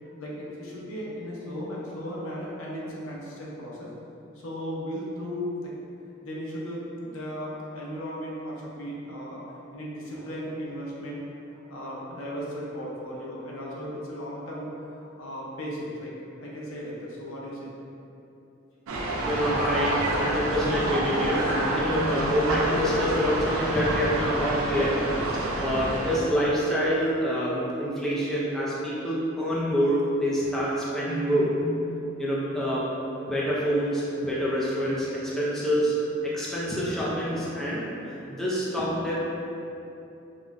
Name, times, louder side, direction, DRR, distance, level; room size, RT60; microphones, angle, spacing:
voice 1, 0.0-3.9 4.3-5.7 6.2-9.4 9.7-11.2 11.7-16.1 16.4-17.7, equal, 75° left, -5 dB, 0.7 m, -36 dB
sound 1, 18.9-26.2, right 1 dB, 85° right, 0.5 m, -28 dB
voice 2, 19.2-25.0 25.6-31.9 32.2-32.9 33.2-36.0 36.2-37.9 38.3-39.2, equal, ahead, -8 dB, 0.4 m, -26 dB
5.0 x 2.1 x 2.4 m, 2.8 s
head